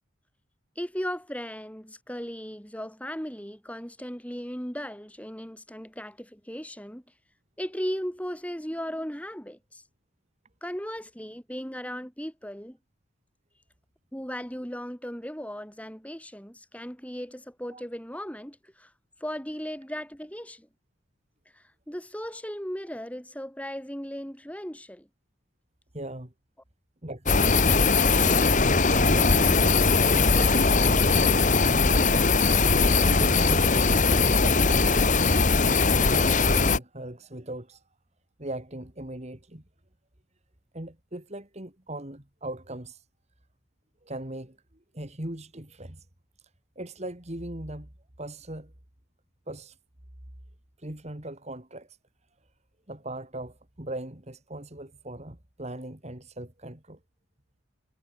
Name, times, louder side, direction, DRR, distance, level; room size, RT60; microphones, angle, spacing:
voice 1, 0.7-7.0 7.6-9.8 10.6-12.8 14.1-18.9 19.2-20.7 21.5-25.1, equal, 5° left, 6.5 m, -36 dB
voice 2, 25.9-26.3 27.0-27.7 28.8-31.3 31.7-32.2 33.0-35.1 36.1-37.8 38.4-39.6 40.7-43.0 44.0-44.6 44.9-46.0 46.8-47.9 48.2-48.7 49.5-49.7 50.8-52.0 52.9-57.0, right 1 dB, 35° right, 2.7 m, -39 dB
sound 1, 27.3-36.8, left 4 dB, 40° left, 1.6 m, -20 dB
head